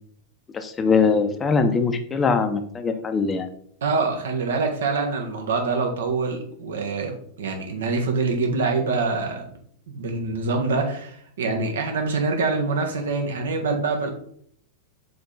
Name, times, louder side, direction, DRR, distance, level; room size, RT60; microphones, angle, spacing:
voice 1, 0.5-3.5, left 5 dB, 20° left, 7 dB, 0.7 m, -22 dB
voice 2, 3.8-9.4 9.9-14.1, right 4 dB, 65° right, 3 dB, 1.3 m, -25 dB
5.6 x 4.3 x 3.9 m, 0.62 s
figure-of-eight pair, 90°, 0 cm